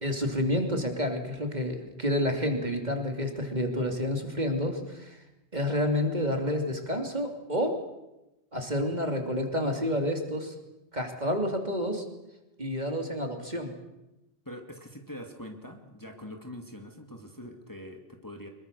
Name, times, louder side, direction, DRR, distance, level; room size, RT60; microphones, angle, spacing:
voice 1, 0.0-5.2 5.5-7.8 8.5-10.5 10.9-12.0 12.6-13.7, left 1 dB, 35° right, 4 dB, 3.1 m, -29 dB
voice 2, 14.5-18.5, left 1 dB, 15° left, 4 dB, 2.3 m, -43 dB
25.0 x 22.5 x 6.8 m, 0.94 s
omnidirectional pair, 1.2 m